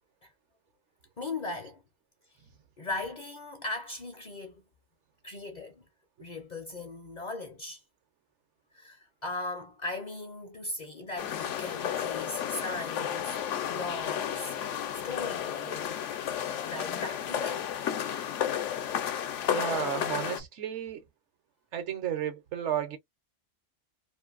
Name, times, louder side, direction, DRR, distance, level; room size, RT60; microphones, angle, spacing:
voice 1, 1.2-1.8 2.8-4.6 5.2-5.9 6.2-7.8 8.7-14.7 15.0-17.7, left 2 dB, 50° left, 0.6 m, -38 dB
sound 1, 11.2-20.4, left 9 dB, 80° left, 1.0 m, -32 dB
voice 2, 19.5-21.0 21.7-23.0, right 9 dB, 70° right, 1.0 m, -33 dB
2.6 x 2.5 x 2.3 m
omnidirectional pair, 1.3 m